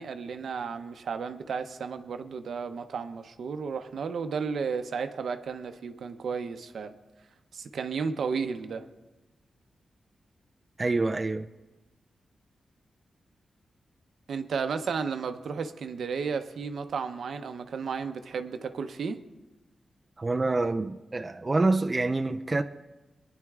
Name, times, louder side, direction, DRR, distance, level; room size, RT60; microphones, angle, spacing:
voice 1, 0.0-6.9 7.5-8.9 14.3-19.2, right 5 dB, 75° right, 0.6 m, -33 dB
voice 2, 10.8-11.5 20.2-22.6, right 2 dB, 25° right, 0.3 m, -26 dB
21.0 x 10.5 x 2.4 m
wide cardioid pair, 145°, 0 cm